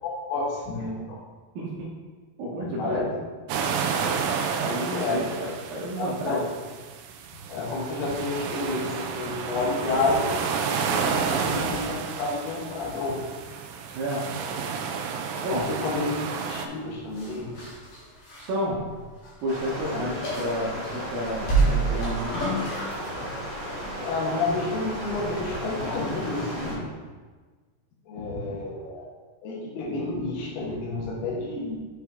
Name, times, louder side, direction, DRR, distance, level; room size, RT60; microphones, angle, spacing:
voice 1, 0.0-1.2 2.6-3.0 4.9-5.2 6.2-6.4 7.5-10.4 10.7-13.2 15.5-16.1 16.5-17.6 19.9-20.0 23.2-23.3 24.0-26.8 28.1-29.1 29.4-31.8, left 3 dB, 80° left, -4 dB, 3.3 m, -30 dB
voice 2, 1.6-1.9 2.4-3.1 4.6-6.5 13.9-14.2 15.4-15.7 18.4-18.8 19.4-22.3, equal, 70° right, -6 dB, 2.5 m, -30 dB
sound 1, 3.5-16.7, right 6 dB, 90° right, 1.9 m, -31 dB
sound 2, 17.1-19.4 19.7-19.8 20.2-20.9 21.4-23.3 23.6-23.8, right 3 dB, 60° left, 2.8 m, -27 dB
Stream, 19.5-26.7, equal, 40° right, 1.0 m, -35 dB
8.1 x 4.6 x 3.6 m, 1.4 s
omnidirectional pair, 4.7 m